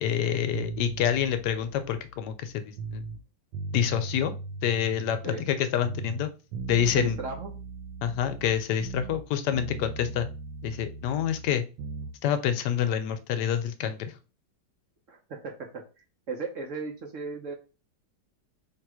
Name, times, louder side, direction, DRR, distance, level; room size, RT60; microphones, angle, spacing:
voice 1, 0.0-3.0 3.7-4.3 4.6-6.3 6.7-7.2 8.0-10.3 10.6-11.6 12.2-14.1, left 9 dB, 75° left, 9 dB, 1.2 m, -27 dB
sound 1, 0.5-3.2 3.5-5.6 5.8-9.3 9.5-12.2, right 4 dB, 90° right, 1.3 m, -38 dB
voice 2, 7.0-7.5 15.1-15.8 16.3-17.5, right 4 dB, 55° right, 2 dB, 1.0 m, -36 dB
3.7 x 2.8 x 4.7 m, 0.32 s
omnidirectional pair, 1.9 m